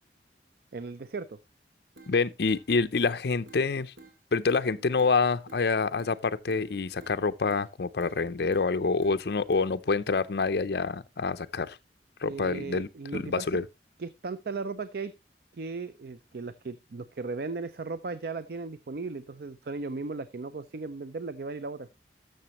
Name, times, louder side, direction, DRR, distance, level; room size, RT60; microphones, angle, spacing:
voice 1, 0.7-1.4 12.2-13.5 14.0-15.1 15.5-21.9, right 4 dB, 55° right, 0.5 m, -36 dB
sound 1, 2.0-2.1 2.5-3.1 3.5-3.6 4.0-4.1 4.5-5.1 5.5-5.7 6.0-6.1 6.5-7.2 7.5-7.7 8.0-8.2 8.5-9.2 9.5-9.7, right 3 dB, 80° right, 2.2 m, -51 dB
voice 2, 2.1-3.9 4.3-11.8 12.2-13.6, left 4 dB, 60° left, 0.5 m, -27 dB
13.0 x 6.6 x 3.0 m
head